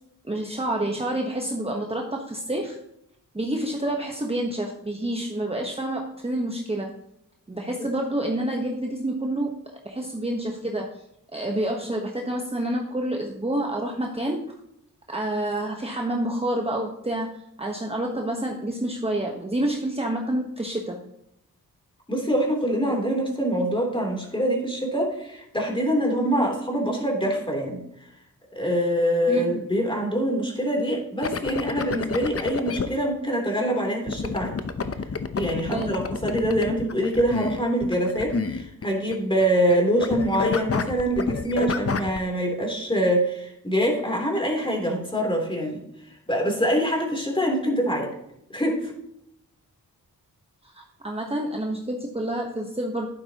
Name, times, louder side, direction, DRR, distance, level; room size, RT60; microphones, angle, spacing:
voice 1, 0.2-2.8 3.3-6.9 7.5-9.5 9.8-11.0 11.3-14.5 15.1-17.3 17.6-21.0 29.3-29.5 35.7-36.0 50.6-53.1, right 1 dB, 15° right, 1 dB, 1.3 m, -28 dB
voice 2, 22.1-27.8 28.6-34.5 35.3-45.8 46.3-48.1 48.5-48.9, equal, 15° left, 0 dB, 3.4 m, -24 dB
Loveing the Glitches, 31.2-32.9 34.1-39.2 39.4-39.7 40.0-42.2, left 5 dB, 40° left, 0.8 m, -29 dB
11.5 x 9.4 x 3.0 m, 0.79 s
cardioid pair, 65°, 36 cm